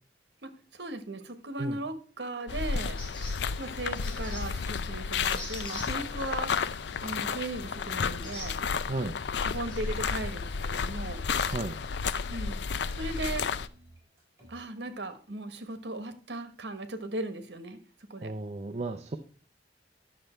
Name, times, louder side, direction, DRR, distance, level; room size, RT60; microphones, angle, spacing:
voice 1, 0.4-3.0 3.6-6.5 7.0-8.6 9.4-11.2 12.3-12.6 13.0-13.5 14.5-17.8 18.1-18.3, right 2 dB, 70° right, 9 dB, 1.4 m, -37 dB
sound 1, 2.5-13.7, left 5 dB, 70° left, 0.5 m, -32 dB
sound 2, 3.0-10.6, left 1 dB, 30° left, 3.9 m, -47 dB
voice 2, 8.8-9.2 11.4-11.7 18.2-19.2, right 2 dB, 35° right, 7 dB, 0.6 m, -34 dB
sound 3, 9.6-11.4 11.8-14.6, right 1 dB, 15° right, 4.7 m, -54 dB
10.5 x 6.6 x 4.4 m, 0.41 s
head